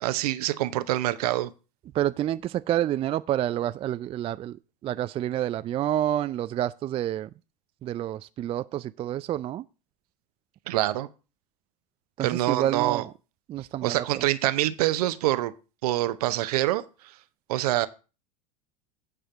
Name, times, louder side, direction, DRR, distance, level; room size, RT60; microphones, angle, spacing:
voice 1, 0.0-1.5 10.7-11.1 12.2-13.0 13.8-15.5 15.8-16.8 17.5-17.9, right 15 dB, 65° right, 0.9 m, -25 dB
voice 2, 1.9-4.6 4.8-7.3 7.8-9.6 12.2-13.1 13.5-14.2, right 12 dB, 25° right, 0.4 m, -28 dB
9.1 x 5.0 x 7.1 m
hypercardioid pair, 85°, 21 cm